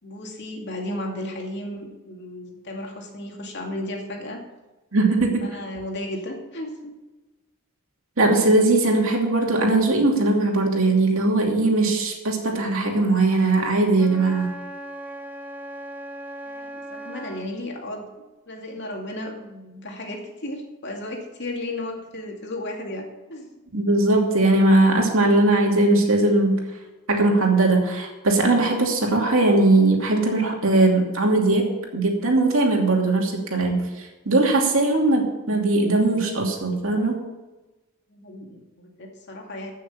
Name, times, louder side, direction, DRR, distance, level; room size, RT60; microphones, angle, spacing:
voice 1, 0.0-4.4 5.4-6.9 16.6-18.1 18.5-23.5 38.1-39.7, left 1 dB, 55° left, 1 dB, 2.4 m, -34 dB
voice 2, 4.9-5.4 8.2-14.5 23.7-26.6 27.1-37.2, right 2 dB, 70° right, 1 dB, 2.7 m, -20 dB
Wind instrument woodwind instrument, 13.9-17.5, right 1 dB, 10° right, 1.4 m, -37 dB
14.5 x 6.5 x 7.1 m, 1.1 s
head